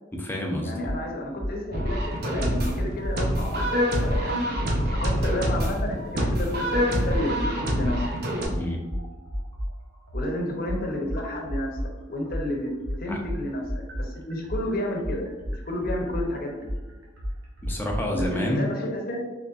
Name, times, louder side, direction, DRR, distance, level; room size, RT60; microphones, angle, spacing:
voice 1, 0.1-0.7 8.5-8.8 13.1-13.2 17.6-18.7, left 1 dB, 10° left, 0 dB, 0.5 m, -28 dB
voice 2, 0.6-3.6 3.9-4.5 4.8-7.3 7.6-8.0 10.1-11.7 12.1-12.7 13.0-13.6 14.0-15.2 15.6-16.6 18.2-19.2, left 1 dB, 50° left, 0 dB, 0.8 m, -31 dB
sound 1, 0.8-1.0 1.4-1.5 1.9-3.2 3.5-3.7 4.1-5.4 5.7-5.9 6.3-7.5 7.9-11.9 12.3-18.3, equal, 90° right, 0.9 m, -32 dB
sound 2, 1.7-8.5, equal, 55° right, 0.7 m, -26 dB
3.8 x 3.2 x 2.5 m, 1.2 s
head